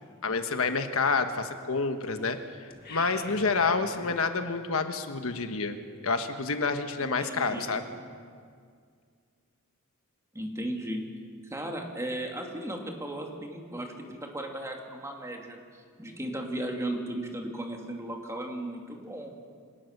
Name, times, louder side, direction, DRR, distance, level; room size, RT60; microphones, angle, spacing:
voice 1, 0.2-2.4 2.9-5.8 6.0-7.8, left 4 dB, 70° left, 7 dB, 1.3 m, -28 dB
sound 1, 2.7-4.3, left 4 dB, 45° left, 1.7 m, -46 dB
voice 2, 7.0-7.7 10.3-11.0 11.5-15.6 16.0-19.3, right 1 dB, 15° right, 1 dB, 2.5 m, -36 dB
25.5 x 18.0 x 6.7 m, 2.1 s
head